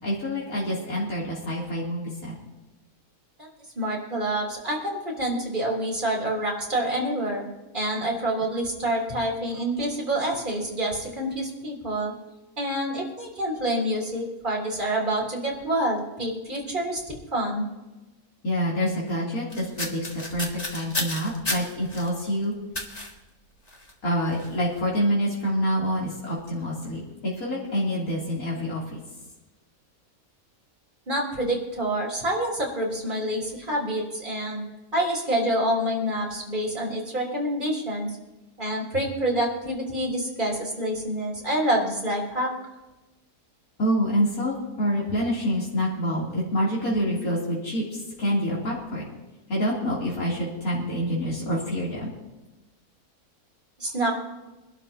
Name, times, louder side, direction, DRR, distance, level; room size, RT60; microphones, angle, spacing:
voice 1, 0.0-2.3 18.4-22.5 24.0-29.0 43.8-49.0 49.5-52.1, equal, 65° left, -6 dB, 3.8 m, -27 dB
voice 2, 3.8-7.5 7.7-12.1 12.6-17.0 17.3-17.7 31.1-34.6 34.9-38.1 38.6-42.5 53.8-54.1, right 1 dB, 30° right, -3 dB, 3.8 m, -27 dB
sound 1, 19.5-22.1 22.7-23.1 23.7-23.9 24.3-24.5, left 1 dB, 25° left, 1.7 m, -32 dB
24.5 x 12.0 x 2.9 m, 1.1 s
omnidirectional pair, 1.6 m